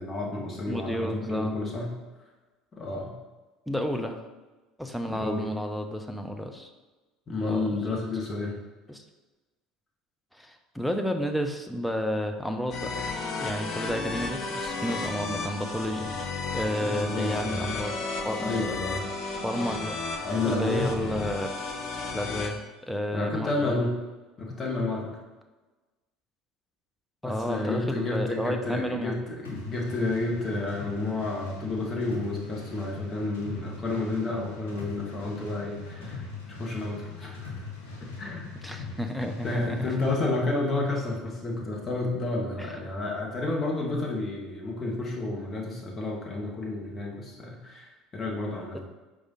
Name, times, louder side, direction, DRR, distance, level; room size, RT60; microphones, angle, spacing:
voice 1, 0.0-1.9 2.8-3.1 5.1-5.5 7.3-8.6 16.8-17.7 18.4-19.1 20.2-20.9 23.1-23.9 24.4-25.2 27.2-37.5 38.0-38.5 39.4-48.8, left 2 dB, 30° left, -1 dB, 1.1 m, -31 dB
voice 2, 0.7-1.6 3.7-4.2 4.8-6.7 7.5-7.9 8.9-9.0 10.3-12.9 13.4-16.1 16.5-18.5 19.4-20.0 20.4-21.5 22.1-23.8 27.2-29.2 38.6-39.9 42.6-42.7 48.7-48.8, equal, ahead, 5 dB, 0.5 m, -31 dB
sound 1, 12.7-22.5, left 4 dB, 45° left, 0.6 m, -33 dB
Danskanaal (Ritme), 29.4-40.2, left 4 dB, 75° left, 0.8 m, -41 dB
4.8 x 2.4 x 4.0 m, 1.2 s
figure-of-eight pair, 65°, 0 cm